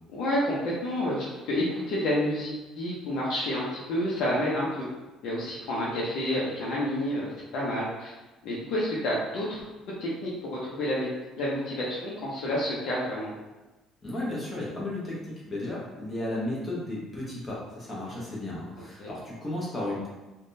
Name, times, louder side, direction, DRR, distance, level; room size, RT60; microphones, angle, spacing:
voice 1, 0.1-4.9 5.2-8.1 8.4-9.6 10.0-11.1 11.4-13.3 19.0-19.1, left 1 dB, 60° left, -6 dB, 0.6 m, -29 dB
voice 2, 14.0-20.1, left 1 dB, 15° left, -6 dB, 0.8 m, -34 dB
3.4 x 2.2 x 2.6 m, 1.1 s
cardioid pair, 170°, 0 cm